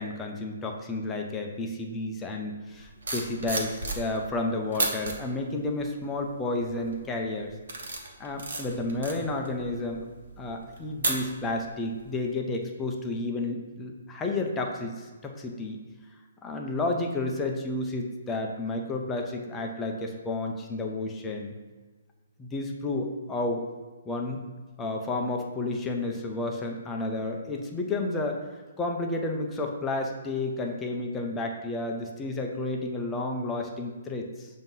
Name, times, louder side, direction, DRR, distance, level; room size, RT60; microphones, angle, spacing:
voice 1, 0.0-7.5 8.2-10.1 10.4-15.8 16.4-21.5 22.4-23.6 24.1-24.4 24.8-28.4 28.8-34.5, left 2 dB, 10° left, 1 dB, 0.4 m, -31 dB
sound 1, 2.8-4.3 4.7-5.1 5.8-6.1 6.6-7.0 7.4-11.7 12.0-12.3, right 2 dB, 60° right, 1.1 m, -33 dB
7.4 x 2.7 x 5.3 m, 1.3 s
hypercardioid pair, 175°, 0 cm